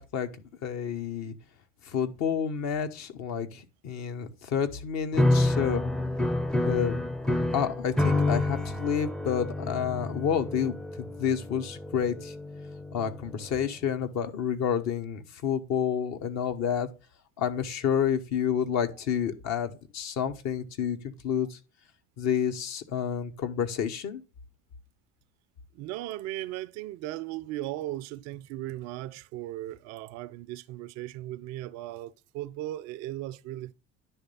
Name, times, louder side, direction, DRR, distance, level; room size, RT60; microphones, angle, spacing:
voice 1, 0.0-1.3 1.8-5.8 6.6-12.3 12.9-16.9 17.4-21.6 22.2-24.2, left 8 dB, 50° left, 1.1 m, -29 dB
sound 1, 5.1-13.5, left 2 dB, ahead, 0.5 m, -29 dB
voice 2, 25.7-33.7, right 15 dB, 50° right, 0.4 m, -37 dB
10.0 x 3.3 x 5.4 m
figure-of-eight pair, 55°, 34 cm